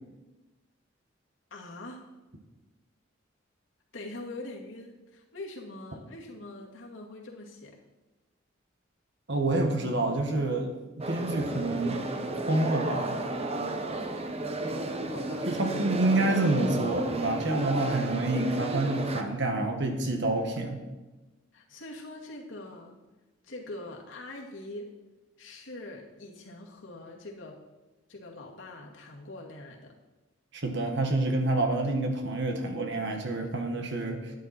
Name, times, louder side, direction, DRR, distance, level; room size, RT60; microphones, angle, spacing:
voice 1, 1.5-2.0 3.9-7.7 15.1-15.4 21.5-23.0 23.4-24.9 25.4-27.6 28.1-29.9, left 2 dB, 75° left, -1 dB, 2.2 m, -43 dB
voice 2, 9.3-10.7 11.1-12.0 12.5-13.2 15.5-20.8 30.5-34.3, right 2 dB, 65° right, 3 dB, 1.8 m, -28 dB
sound 1, 11.0-19.2, right 2 dB, 30° right, 0.9 m, -33 dB
11.5 x 9.9 x 4.4 m, 1.1 s
head